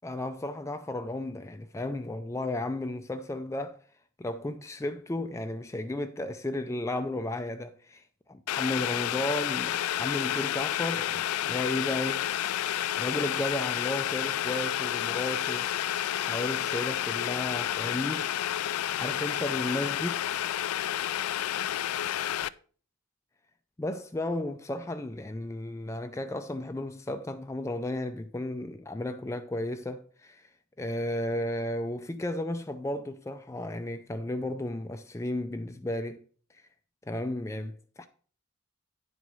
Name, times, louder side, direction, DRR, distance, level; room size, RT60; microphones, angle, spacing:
voice 1, 0.0-3.8 4.2-12.3 13.0-15.7 16.2-18.3 19.0-20.3 23.8-30.5 30.8-36.2 37.1-38.1, left 1 dB, 15° left, 0.3 m, -34 dB
Boiling, 8.5-22.5, left 12 dB, 85° left, 0.4 m, -30 dB
10.0 x 4.7 x 5.3 m
head